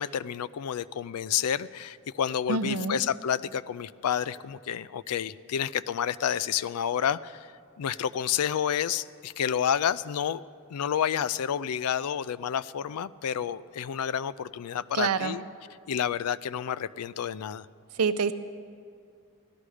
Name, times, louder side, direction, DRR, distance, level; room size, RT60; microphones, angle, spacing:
voice 1, 0.0-7.5 7.8-10.4 10.7-15.4 15.9-17.7, left 8 dB, 85° left, 17 dB, 0.4 m, -29 dB
voice 2, 2.5-3.0 14.9-15.4 17.9-18.3, right 5 dB, 90° right, 11 dB, 0.7 m, -26 dB
16.5 x 12.5 x 4.9 m, 2.3 s
head